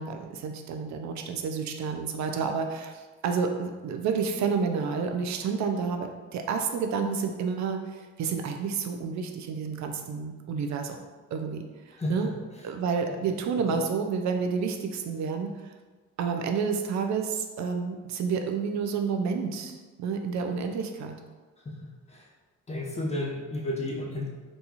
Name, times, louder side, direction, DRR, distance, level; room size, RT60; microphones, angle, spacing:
voice 1, 0.0-11.0 11.3-12.3 12.6-15.7 16.2-21.2, right 5 dB, 70° right, 5 dB, 0.4 m, -30 dB
voice 2, 11.9-12.3 13.6-13.7 21.6-22.3 22.7-24.3, left 1 dB, 20° left, -1 dB, 0.7 m, -32 dB
4.1 x 2.3 x 2.9 m, 1.3 s
cardioid pair, 90°, 30 cm